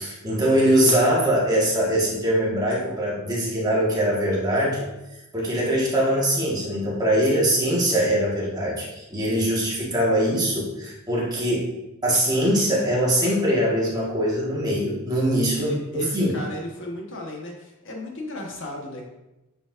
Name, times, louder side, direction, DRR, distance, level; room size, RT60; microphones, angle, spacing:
voice 1, 0.0-4.8 5.3-11.7 12.0-16.4, equal, 20° right, -5 dB, 1.6 m, -22 dB
voice 2, 15.5-19.0, left 1 dB, 60° left, 0 dB, 1.3 m, -35 dB
8.6 x 5.0 x 2.6 m, 0.97 s
head